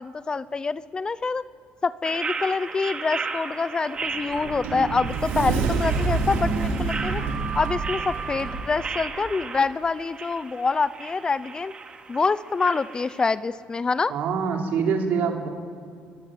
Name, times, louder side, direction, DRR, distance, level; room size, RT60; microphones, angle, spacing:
voice 1, 0.0-1.4 1.8-7.2 7.5-11.7 12.1-14.1, left 4 dB, 25° left, 16 dB, 0.7 m, -26 dB
sound 1, 2.0-13.4, right 4 dB, 35° right, 2.6 m, -35 dB
Sliding door, 3.9-8.8, right 4 dB, 90° right, 4.4 m, -27 dB
voice 2, 14.1-15.5, right 6 dB, 65° right, 1 dB, 4.5 m, -25 dB
23.0 x 20.5 x 9.3 m, 2.3 s
cardioid pair, 100°, 3 cm